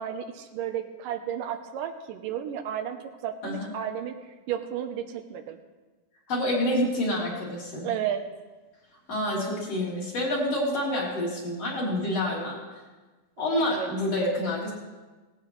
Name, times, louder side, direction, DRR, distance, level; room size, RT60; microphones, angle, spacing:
voice 1, 0.0-3.0 3.2-4.1 4.5-5.6 7.8-8.3 13.4-13.9, right 9 dB, 75° right, 6 dB, 2.3 m, -33 dB
voice 2, 6.3-7.9 9.1-12.6 13.4-14.7, left 1 dB, 40° left, -5 dB, 4.5 m, -28 dB
18.5 x 16.0 x 3.2 m, 1.3 s
omnidirectional pair, 4.3 m